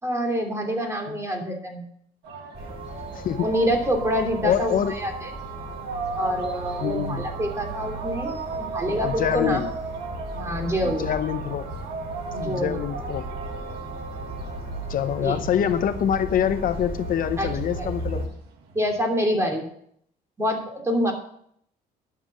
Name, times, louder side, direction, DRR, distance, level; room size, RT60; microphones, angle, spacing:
voice 1, 0.0-1.9 3.4-4.7 5.0-5.1 6.2-9.6 10.3-11.1 12.3-12.8 15.2-15.4 17.4-17.5 17.8-18.2 18.7-19.7 20.4-21.1, equal, 15° right, 2 dB, 3.2 m, -26 dB
sound 1, 2.2-19.1, right 5 dB, 85° right, 1.5 m, -37 dB
sound 2, 2.5-18.3, right 1 dB, 35° right, 4.1 m, -36 dB
voice 2, 3.1-3.5 4.4-5.0 6.8-7.2 8.9-9.7 10.8-11.7 12.4-13.3 14.9-18.2, left 9 dB, 55° left, 10 dB, 0.7 m, -25 dB
11.5 x 7.4 x 6.3 m, 0.67 s
cardioid pair, 110°, 17 cm